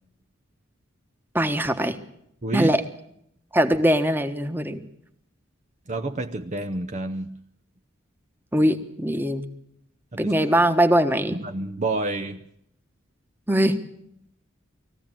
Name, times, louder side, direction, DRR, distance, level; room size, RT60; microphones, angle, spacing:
voice 1, 1.3-2.0 2.5-2.8 3.5-4.8 8.5-9.4 10.2-11.4 13.5-13.8, right 1 dB, 10° right, 1.3 m, -21 dB
voice 2, 5.9-7.4 10.1-10.3 11.3-12.4, right 2 dB, 35° right, 0.8 m, -29 dB
20.5 x 15.0 x 8.9 m
head